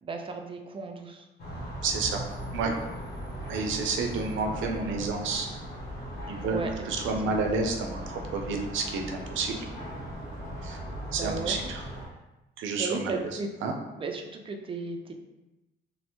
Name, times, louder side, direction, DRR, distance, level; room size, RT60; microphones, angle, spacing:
voice 1, 0.0-1.3 6.4-6.9 7.2-7.4 11.2-11.6 12.8-13.5 14.0-15.1, right 3 dB, 25° right, 4 dB, 0.4 m, -35 dB
sound 1, 1.4-12.1, equal, 55° left, 1.1 m, -38 dB
voice 2, 1.8-2.2 2.5-2.7 3.5-5.5 6.3-9.6 10.6-10.8 11.1-11.8 12.6-13.2 13.6-13.7, right 4 dB, 75° right, 2 dB, 0.5 m, -30 dB
3.1 x 2.0 x 2.9 m, 1.0 s
cardioid pair, 90°, 20 cm